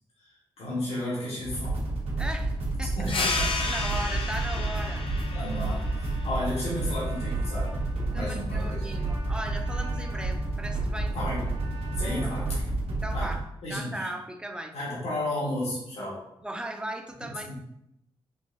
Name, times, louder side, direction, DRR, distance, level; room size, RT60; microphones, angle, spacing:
voice 1, 0.6-1.8 3.0-3.7 5.3-7.7 8.1-8.9 11.1-11.5 12.0-12.8 13.1-13.3 13.6-14.1 14.7-16.2 17.2-17.5, left 1 dB, 85° left, -7 dB, 1.3 m, -33 dB
sound 1, 1.4-13.4, right 2 dB, 85° right, 0.8 m, -30 dB
voice 2, 2.2-3.1 3.7-5.1 8.1-11.2 11.9-12.3 12.9-13.4 13.7-14.7 16.4-17.5, right 1 dB, 10° right, 5 dB, 0.4 m, -37 dB
sound 2, 3.1-8.2, left 3 dB, 60° left, 0.5 m, -34 dB
Trumpet, 4.5-12.5, right 2 dB, 50° right, 1.0 m, -48 dB
3.9 x 2.8 x 2.6 m, 0.82 s
cardioid pair, 70°, 10 cm